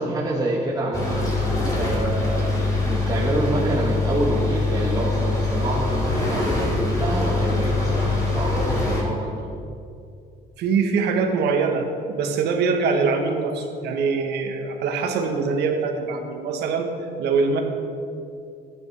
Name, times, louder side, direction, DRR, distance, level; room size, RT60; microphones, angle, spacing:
voice 1, 0.0-9.5, right 2 dB, 20° right, -5 dB, 1.2 m, -27 dB
sound 1, 0.9-9.0, left 3 dB, 20° left, 2.2 m, -23 dB
voice 2, 10.6-16.9 17.2-17.6, right 4 dB, 75° right, 4 dB, 1.1 m, -23 dB
12.0 x 8.9 x 3.3 m, 2.4 s
cardioid pair, 110°, 17 cm